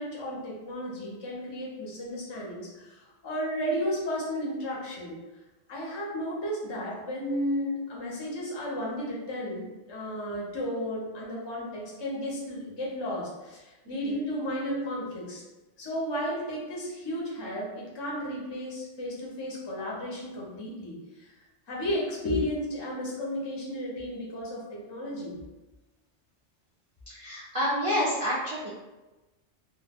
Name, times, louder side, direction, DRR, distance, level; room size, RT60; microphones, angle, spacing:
voice 1, 0.0-5.3 5.7-15.4 15.8-21.3 21.7-25.4, equal, 30° left, -4 dB, 0.5 m, -33 dB
voice 2, 13.8-14.2 27.1-28.7, equal, 60° right, -7 dB, 0.3 m, -29 dB
2.2 x 2.1 x 3.4 m, 1.1 s
omnidirectional pair, 1.2 m